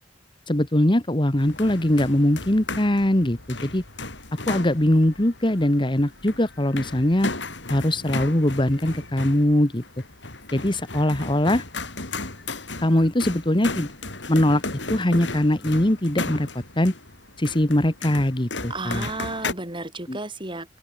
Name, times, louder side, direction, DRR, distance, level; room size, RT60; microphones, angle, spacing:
voice 1, 0.5-3.8 4.3-7.3 7.7-9.8 10.5-11.6 12.8-13.9 14.3-14.6 14.9-16.9 17.4-19.1 20.1-20.2, left 1 dB, 30° left, 1.7 m, -21 dB
sound 1, 1.4-19.5, left 3 dB, 90° left, 5.3 m, -35 dB
voice 2, 18.7-20.8, right 2 dB, 30° right, 7.6 m, -33 dB
open air
head